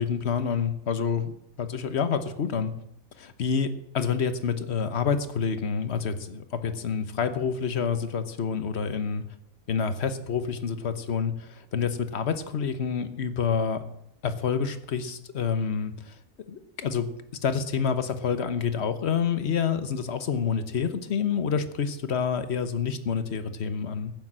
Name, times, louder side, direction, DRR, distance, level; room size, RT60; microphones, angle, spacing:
voice 1, 0.0-2.7 3.2-9.2 9.7-13.8 14.2-16.1 16.5-17.1 17.4-24.1, left 6 dB, 55° left, 10 dB, 1.3 m, -28 dB
15.5 x 7.1 x 7.6 m, 0.80 s
omnidirectional pair, 1.4 m